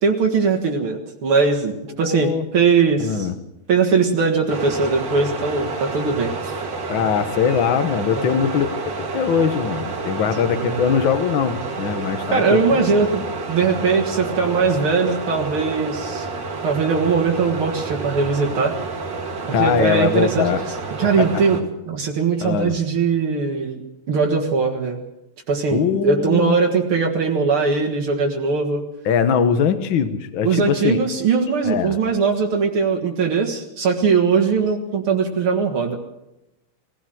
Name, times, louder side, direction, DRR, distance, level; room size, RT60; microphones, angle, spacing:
voice 1, 0.0-3.3 3.7-6.5 8.2-8.4 10.5-10.8 12.3-13.2 13.5-16.3 16.6-18.8 19.5-20.5 21.0-21.6 21.9-23.8 24.1-25.0 25.5-28.8 30.4-36.0, right 5 dB, 80° right, 1 dB, 2.8 m, -20 dB
voice 2, 2.0-2.5 3.0-3.3 6.9-8.7 9.0-12.8 19.5-20.6 21.2-21.4 22.4-22.8 25.7-26.6 29.1-31.0 31.7-32.0, left 7 dB, 65° left, 10 dB, 1.9 m, -21 dB
sound 1, 4.5-21.6, right 4 dB, 55° right, 2.7 m, -29 dB
21.0 x 16.0 x 7.8 m, 0.90 s
omnidirectional pair, 2.3 m